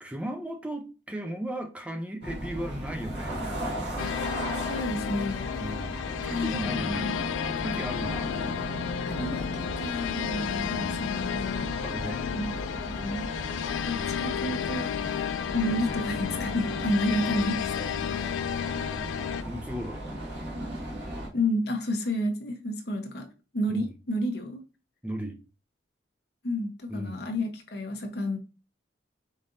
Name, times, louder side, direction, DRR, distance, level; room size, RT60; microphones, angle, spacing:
voice 1, 0.0-3.4 5.6-7.1 7.4-8.3 11.8-12.3 19.0-19.1 19.4-20.0 23.7-23.8 25.0-25.4 26.9-27.2, right 1 dB, 5° right, 0.6 m, -36 dB
sound 1, 2.2-21.3, right 1 dB, 70° right, 1.7 m, -37 dB
sound 2, 4.0-19.4, left 9 dB, 90° left, 0.3 m, -32 dB
voice 2, 4.6-5.5 6.3-7.2 9.1-11.8 12.3-13.3 13.7-14.9 15.5-18.0 21.3-23.3 23.5-24.6 26.4-28.4, left 1 dB, 60° left, 0.9 m, -31 dB
5.2 x 4.0 x 2.5 m
head